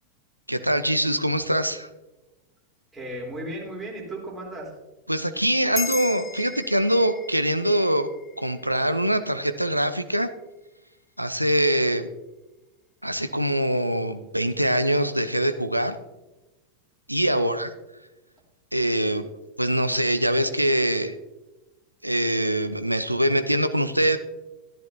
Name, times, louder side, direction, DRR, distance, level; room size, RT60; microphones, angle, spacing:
voice 1, 0.5-1.9 5.1-8.1 8.4-10.3 11.2-12.1 13.0-16.0 17.1-17.7 18.7-19.3 19.6-21.1 22.0-24.2, right 1 dB, 90° right, 10 dB, 0.6 m, -23 dB
voice 2, 2.9-4.7 17.3-17.6, right 1 dB, 15° right, -3 dB, 3.7 m, -35 dB
sound 1, 5.7-10.5, left 5 dB, 15° left, 0.6 m, -38 dB
14.0 x 10.5 x 2.8 m, 1.1 s
figure-of-eight pair, 90°, 0 cm